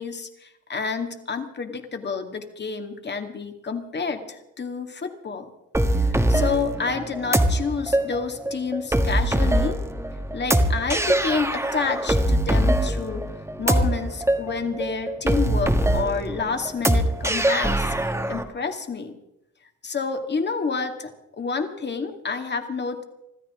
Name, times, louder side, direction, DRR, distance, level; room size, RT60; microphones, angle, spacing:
voice 1, 0.0-5.5 6.1-9.8 10.3-13.3 13.6-17.9 18.3-19.1 19.8-23.0, left 5 dB, 35° left, 5 dB, 2.1 m, -29 dB
sound 1, 5.7-18.4, right 1 dB, 10° right, 1.6 m, -22 dB
25.5 x 13.5 x 3.7 m, 0.87 s
cardioid pair, 90°, 30 cm